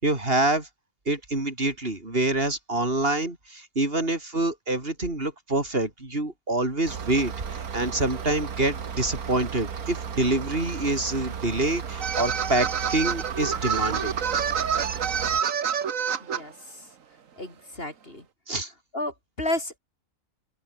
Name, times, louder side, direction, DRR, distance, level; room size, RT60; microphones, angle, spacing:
voice 1, 0.0-0.7 1.1-14.1 18.5-18.7, right 2 dB, 40° right, 4.8 m, -26 dB
sound 1, 6.9-15.4, right 7 dB, 85° right, 2.0 m, -35 dB
sound 2, 12.0-16.4, right 7 dB, 65° right, 1.6 m, -27 dB
voice 2, 17.4-18.2 18.9-19.8, left 1 dB, 40° left, 6.2 m, -31 dB
open air
omnidirectional pair, 1.5 m